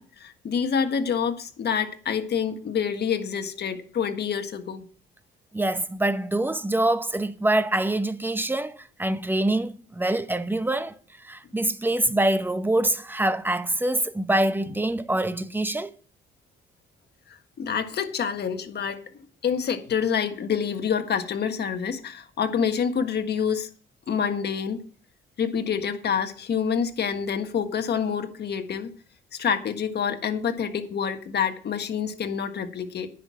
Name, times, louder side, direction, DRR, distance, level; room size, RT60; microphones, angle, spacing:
voice 1, 0.0-4.8 17.6-19.0 19.4-23.7 24.1-24.8 25.4-28.9 29.4-33.1, left 7 dB, 55° left, 1.6 m, -27 dB
voice 2, 5.5-11.0 11.2-15.9, right 1 dB, 10° right, 0.9 m, -25 dB
10.0 x 6.1 x 8.5 m
cardioid pair, 90°, 20 cm